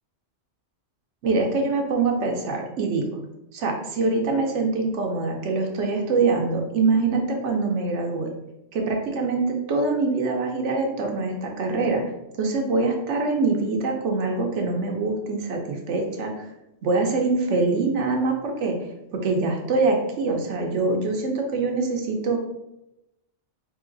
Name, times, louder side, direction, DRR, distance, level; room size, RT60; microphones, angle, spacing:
voice 1, 1.2-3.1 3.5-8.3 8.7-12.0 12.4-16.5 16.8-18.8 19.1-22.4, right 3 dB, 90° right, 2 dB, 1.0 m, -24 dB
3.9 x 2.8 x 3.8 m, 0.88 s
omnidirectional pair, 1.2 m